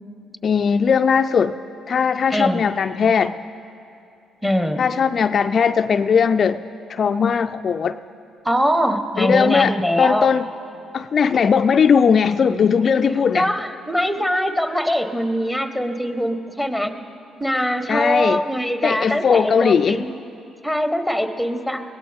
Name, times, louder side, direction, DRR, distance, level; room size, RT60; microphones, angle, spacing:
voice 1, 0.4-1.6 1.9-3.4 4.8-6.6 6.9-8.0 9.2-10.5 10.9-13.5 17.9-18.4 18.8-20.1, left 6 dB, 50° left, 9 dB, 0.3 m, -18 dB
voice 2, 2.3-2.6 4.4-4.8 8.4-10.3 13.3-16.9 17.4-20.1 20.6-21.8, equal, 5° right, 8 dB, 1.3 m, -22 dB
21.5 x 17.0 x 3.6 m, 2.6 s
hypercardioid pair, 55°, 0 cm